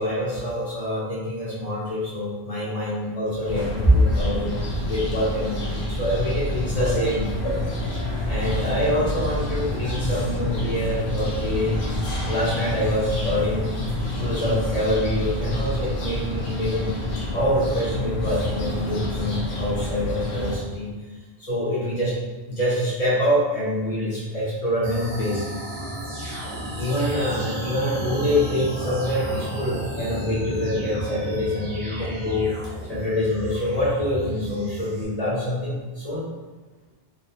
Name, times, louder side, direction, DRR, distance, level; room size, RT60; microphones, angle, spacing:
voice 1, 0.0-4.5 4.9-11.8 12.3-13.7 14.2-16.9 17.2-20.9 21.4-22.1 22.5-25.5 26.8-36.3, left 1 dB, 40° left, -7 dB, 0.9 m, -25 dB
sound 1, 3.4-20.6, left 1 dB, 90° left, 1.0 m, -28 dB
sound 2, 24.8-35.0, right 1 dB, 55° right, 1.4 m, -33 dB
3.5 x 2.2 x 2.7 m, 1.2 s
omnidirectional pair, 1.1 m